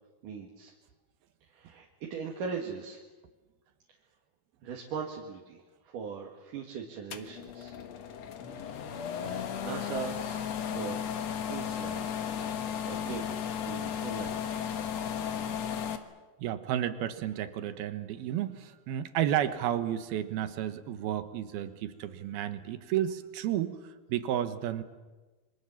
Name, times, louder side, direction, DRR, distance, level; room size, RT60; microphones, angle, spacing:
voice 1, 0.2-0.7 1.5-3.0 4.6-7.7 8.8-10.4 10.7-11.0 11.5-12.1 12.4-14.4, right 6 dB, 65° right, 0 dB, 3.3 m, -40 dB
sound 1, 7.1-16.0, left 8 dB, 55° left, 2.0 m, -35 dB
voice 2, 16.4-23.8 24.1-24.8, right 11 dB, 90° right, 11 dB, 3.2 m, -32 dB
28.0 x 24.5 x 7.3 m, 1.2 s
omnidirectional pair, 4.3 m